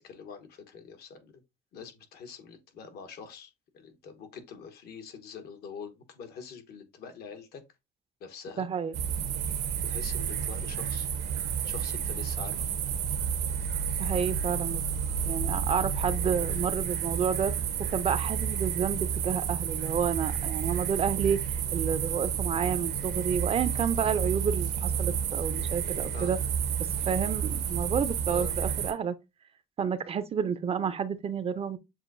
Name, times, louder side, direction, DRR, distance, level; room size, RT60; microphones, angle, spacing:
voice 1, 0.0-1.3 1.7-7.6 8.2-8.7 9.8-11.1 11.6-12.7 26.1-26.3 28.3-28.5, left 6 dB, 70° left, 1.1 m, -45 dB
voice 2, 8.6-9.0 14.0-14.8 15.3-26.4 27.1-29.2 29.8-31.8, right 7 dB, 35° right, 0.5 m, -30 dB
sound 1, 8.9-28.9, right 8 dB, 80° right, 0.9 m, -30 dB
7.1 x 2.6 x 2.5 m
cardioid pair, 110°, 17 cm